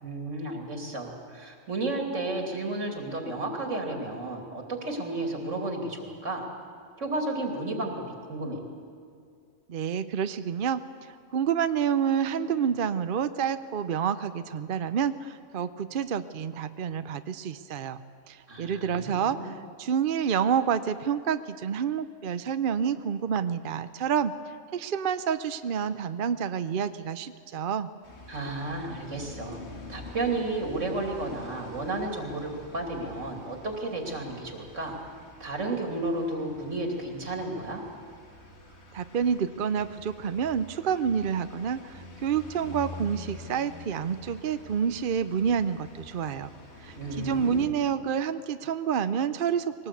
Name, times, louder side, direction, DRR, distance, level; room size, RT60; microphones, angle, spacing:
voice 1, 0.0-6.5 7.0-8.0 8.3-8.7 18.5-19.6 28.3-29.6 29.9-35.0 35.4-37.8 47.0-47.7, right 2 dB, 80° right, 2 dB, 3.1 m, -32 dB
voice 2, 9.7-18.0 18.3-24.3 24.7-27.9 38.9-46.5 46.8-49.9, right 7 dB, 55° right, 11 dB, 0.7 m, -28 dB
sound 1, 28.0-47.7, left 2 dB, 60° left, 2.3 m, -47 dB
21.0 x 18.5 x 8.3 m, 2.4 s
omnidirectional pair, 1.3 m